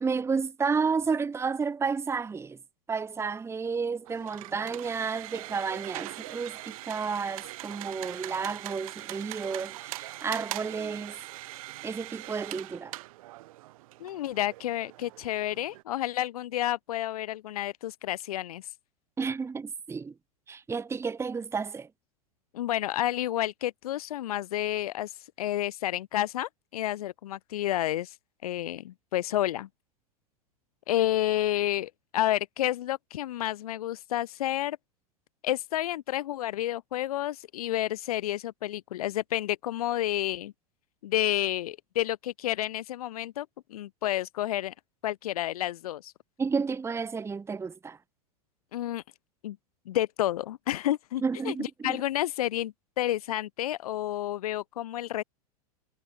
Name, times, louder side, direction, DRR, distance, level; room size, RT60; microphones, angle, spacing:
voice 1, 0.0-2.6 2.9-11.2 11.8-12.9 19.2-20.1 20.5-21.9 46.4-48.0 51.2-52.0, right 5 dB, 15° right, 1.1 m, -31 dB
sound 1, 4.0-15.8, right 18 dB, 65° right, 2.2 m, -42 dB
voice 2, 14.0-18.7 22.5-28.2 28.4-29.7 30.9-34.8 35.4-40.5 41.0-44.7 45.0-46.1 48.7-49.0 49.4-49.6 49.9-55.2, left 13 dB, 70° left, 1.2 m, -30 dB
hypercardioid pair, 100°, 20 cm